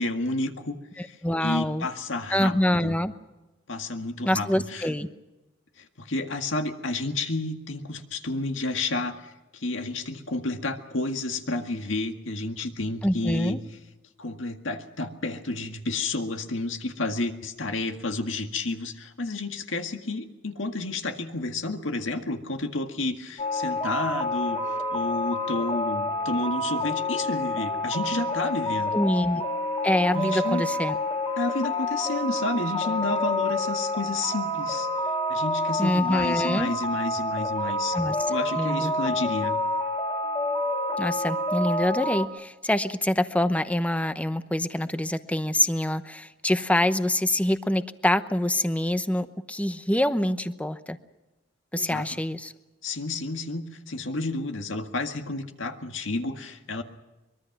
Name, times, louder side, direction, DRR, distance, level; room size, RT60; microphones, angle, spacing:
voice 1, 0.0-2.9 3.7-4.9 5.8-13.6 14.2-24.6 24.9-28.9 30.1-30.6 31.4-34.9 35.3-38.0 38.3-39.5 51.7-52.1 52.8-56.8, left 2 dB, 80° left, 6 dB, 1.9 m, -31 dB
voice 2, 1.0-1.9 2.3-3.1 4.2-5.1 13.0-13.6 28.9-29.4 29.8-31.0 35.8-36.7 37.9-38.2 38.5-38.9 41.0-51.0 51.7-52.5, left 1 dB, 5° left, 11 dB, 0.9 m, -25 dB
sound 1, 23.4-42.3, left 2 dB, 30° left, 2.1 m, -28 dB
24.0 x 22.5 x 6.0 m, 1.1 s
head